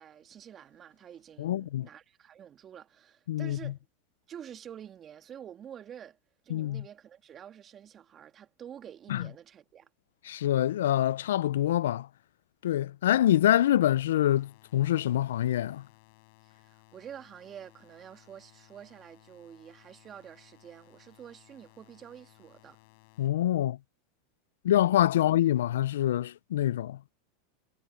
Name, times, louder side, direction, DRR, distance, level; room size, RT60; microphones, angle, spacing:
voice 1, 0.0-3.8 4.3-6.2 6.4-9.9 16.4-22.8, right 9 dB, 35° right, 2.3 m, -48 dB
voice 2, 1.4-1.9 3.3-3.7 6.5-6.8 9.1-9.2 10.2-12.1 12.6-15.8 23.2-23.8 24.6-27.1, left 12 dB, 80° left, 0.4 m, -25 dB
sound 1, 14.3-23.3, left 27 dB, 65° left, 5.6 m, -60 dB
hypercardioid pair, 105°, 0 cm